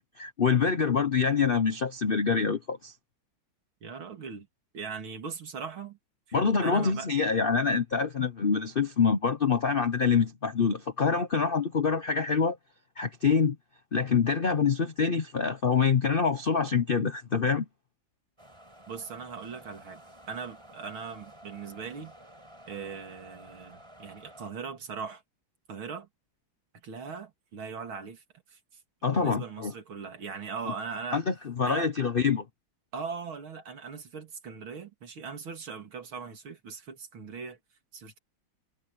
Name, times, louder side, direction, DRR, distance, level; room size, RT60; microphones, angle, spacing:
voice 1, 0.0-2.9 6.3-12.6 13.0-13.6 13.9-17.6 29.0-29.7 31.1-32.4, left 5 dB, 55° left, 0.6 m, -26 dB
voice 2, 3.8-4.5 4.7-6.0 6.3-6.4 6.6-7.1 18.9-20.0 20.3-22.1 22.7-25.2 25.7-26.1 26.8-28.6 29.1-31.2 31.6-31.9 32.9-37.6 37.9-38.2, right 5 dB, 80° right, 3.3 m, -39 dB
sound 1, 18.4-24.5, right 1 dB, 15° right, 6.7 m, -52 dB
omnidirectional pair, 2.2 m